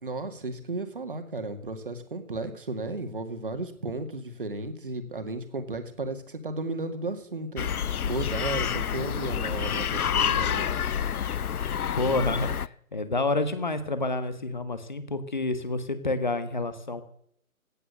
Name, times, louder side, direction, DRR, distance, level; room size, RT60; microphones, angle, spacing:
voice 1, 0.0-7.7 8.1-10.8, right 2 dB, 40° right, 7 dB, 2.1 m, -34 dB
sound 1, 7.6-12.7, left 8 dB, 85° left, 0.6 m, -28 dB
voice 2, 12.0-17.0, left 2 dB, 30° left, 12 dB, 1.5 m, -29 dB
17.0 x 9.2 x 7.8 m, 0.66 s
figure-of-eight pair, 175°, 43 cm